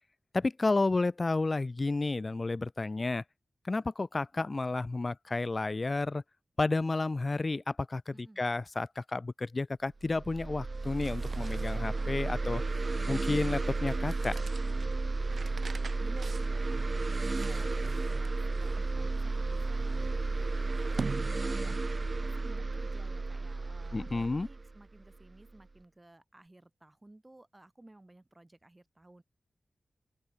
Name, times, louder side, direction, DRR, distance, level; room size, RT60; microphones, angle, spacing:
voice 1, 0.3-3.2 3.6-6.2 6.6-12.6 13.1-14.4 23.9-24.5, left 3 dB, 30° left, 0.4 m, -31 dB
sound 1, 10.0-25.5, right 3 dB, 35° right, 0.4 m, -33 dB
sound 2, 10.7-21.9, right 4 dB, 55° right, 6.6 m, -46 dB
voice 2, 15.3-29.2, right 2 dB, 20° right, 3.9 m, -57 dB
open air
wide cardioid pair, 135°, 0 cm